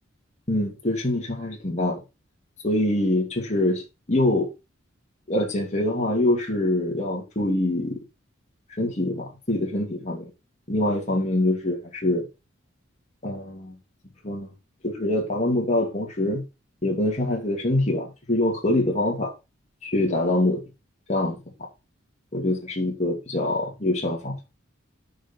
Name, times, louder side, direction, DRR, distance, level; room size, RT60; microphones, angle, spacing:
voice 1, 0.5-2.0 2.6-3.8 4.1-4.5 5.3-8.0 8.8-10.3 10.7-12.3 13.2-13.7 14.2-14.5 14.8-16.4 16.8-19.3 19.8-20.6 21.1-21.7 22.3-24.4, left 1 dB, 35° left, 2.8 m, -24 dB
9.8 x 5.7 x 4.5 m
head